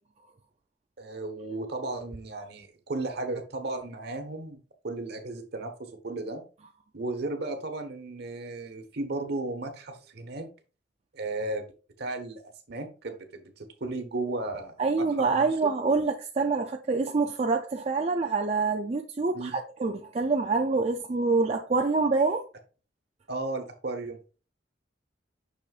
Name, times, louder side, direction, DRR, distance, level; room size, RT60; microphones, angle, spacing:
voice 1, 1.0-6.4 6.9-10.5 11.1-11.7 12.0-12.4 12.7-15.0 15.3-15.7 19.3-19.6 23.3-24.2, right 2 dB, 60° right, 1.2 m, -35 dB
voice 2, 14.8-22.4, right 4 dB, 35° right, 0.4 m, -26 dB
6.4 x 6.2 x 2.4 m
head